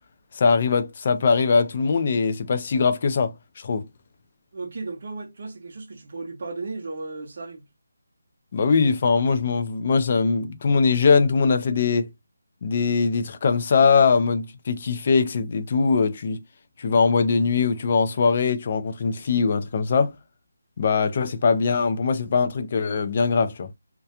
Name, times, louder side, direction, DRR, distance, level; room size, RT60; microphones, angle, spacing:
voice 1, 0.3-3.9 8.5-12.1 12.6-16.4 16.8-20.1 20.8-23.7, left 5 dB, 25° left, 0.3 m, -21 dB
voice 2, 4.5-7.6, right 3 dB, 40° right, 0.6 m, -35 dB
2.3 x 2.1 x 2.7 m
figure-of-eight pair, 180°, 0 cm